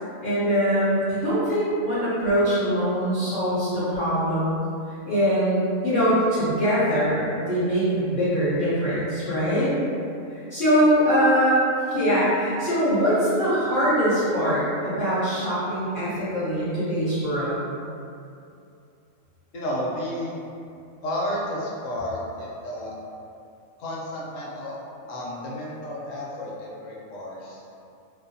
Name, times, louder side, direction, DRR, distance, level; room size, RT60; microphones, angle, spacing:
voice 1, 0.2-4.6 5.0-9.7 10.3-11.6 11.9-17.6, equal, 50° left, -12 dB, 0.6 m, -22 dB
voice 2, 19.5-20.3 21.0-23.0 23.8-24.8 25.1-27.6, left 1 dB, 75° left, -4 dB, 0.9 m, -32 dB
2.6 x 2.0 x 2.5 m, 2.5 s
omnidirectional pair, 1.4 m